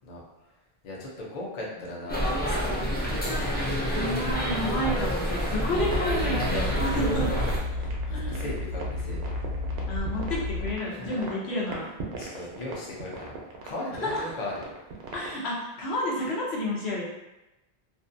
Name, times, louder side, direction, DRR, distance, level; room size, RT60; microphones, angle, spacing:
voice 1, 0.8-2.7 3.0-3.8 5.0-5.4 7.1-7.3 7.7-9.3 10.9-11.3 12.2-13.4 13.6-14.6, left 1 dB, 45° left, -4 dB, 0.7 m, -38 dB
sound 1, 2.1-7.6, equal, 15° left, 0.3 m, -28 dB
sound 2, 2.6-15.4, right 3 dB, 80° right, 0.8 m, -40 dB
voice 2, 3.9-7.3 8.0-8.5 9.9-11.9 14.0-14.2 15.1-17.0, left 1 dB, 85° left, -4 dB, 1.0 m, -30 dB
sound 3, 5.8-10.8, left 2 dB, 70° left, 1.1 m, -32 dB
2.5 x 2.3 x 2.5 m, 0.96 s
omnidirectional pair, 1.0 m